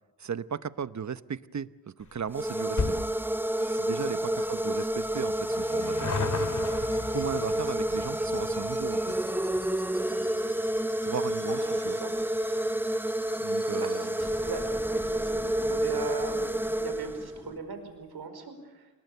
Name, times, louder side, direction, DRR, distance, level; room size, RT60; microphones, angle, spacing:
voice 1, 0.2-3.1 3.7-6.2 7.1-9.1 11.0-12.0 13.4-14.2, right 7 dB, 45° right, 15 dB, 0.9 m, -36 dB
sound 1, 2.0-14.8 15.1-15.2 16.0-16.1 16.3-16.4 16.7-16.8, left 4 dB, 50° left, 2.2 m, -39 dB
sound 2, 2.3-17.5, right 1 dB, 5° right, 0.7 m, -29 dB
sound 3, 3.6-3.7 4.0-4.1 4.4-4.5 4.8-4.9 5.1-5.2 5.5-17.6, equal, 10° left, 5.8 m, -47 dB
voice 2, 11.5-12.1 13.8-18.9, right 4 dB, 85° right, 7 dB, 5.0 m, -40 dB
29.0 x 20.5 x 6.9 m, 1.2 s
cardioid pair, 75°, 38 cm